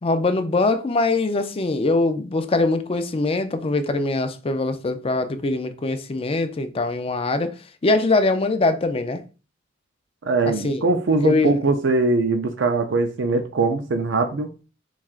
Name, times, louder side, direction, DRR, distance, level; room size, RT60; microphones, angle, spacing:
voice 1, 0.0-7.6 7.8-9.2 10.5-10.9 11.2-11.6, left 3 dB, 30° left, 0.4 m, -22 dB
voice 2, 10.2-14.5, right 3 dB, 70° right, 0.5 m, -21 dB
7.1 x 2.4 x 2.4 m
head